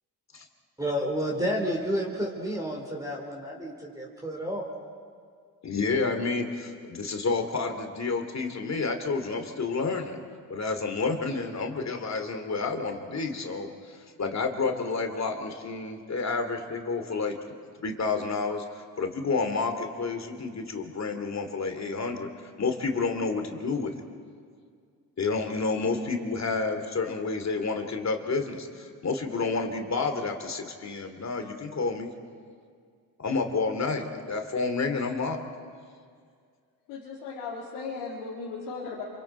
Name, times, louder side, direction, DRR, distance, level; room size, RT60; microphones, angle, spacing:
voice 1, 0.8-4.7, equal, 10° right, -2 dB, 4.2 m, -30 dB
voice 2, 5.6-10.2 10.5-17.4 17.8-22.3 22.6-24.0 25.2-32.1 33.2-35.4, left 4 dB, 35° left, 5 dB, 2.8 m, -30 dB
voice 3, 36.9-39.0, left 4 dB, 85° left, -4 dB, 2.6 m, -36 dB
26.5 x 24.5 x 4.5 m, 2.1 s
supercardioid pair, 65°, 44 cm